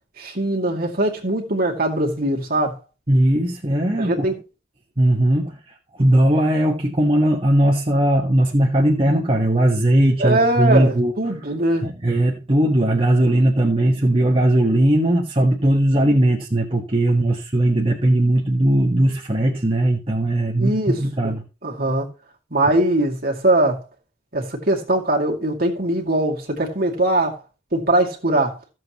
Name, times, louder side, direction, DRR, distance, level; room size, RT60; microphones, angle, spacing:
voice 1, 0.2-2.8 4.0-4.3 10.2-11.9 20.6-21.0 21.6-22.1 22.5-23.8 24.3-27.4 27.7-28.6, right 1 dB, 55° right, 2.3 m, -21 dB
voice 2, 3.1-4.3 5.0-5.6 5.9-11.1 11.8-21.4, right 1 dB, 30° right, 1.4 m, -18 dB
14.5 x 7.7 x 3.0 m
head